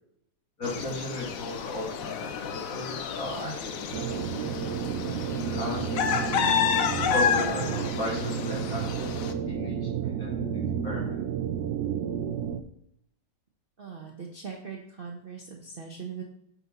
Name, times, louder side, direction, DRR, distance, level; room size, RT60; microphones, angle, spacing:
sound 1, 0.6-9.3, left 7 dB, 90° left, 0.7 m, -30 dB
voice 1, 0.6-4.5 5.5-6.1 6.9-9.2 9.5-10.3 10.8-11.2, left 1 dB, 45° left, -3 dB, 2.9 m, -36 dB
sound 2, 3.9-12.6, right 8 dB, 70° right, 1.0 m, -31 dB
voice 2, 13.8-16.2, right 6 dB, 45° right, 0 dB, 0.7 m, -40 dB
9.4 x 4.5 x 4.1 m, 0.74 s
omnidirectional pair, 2.2 m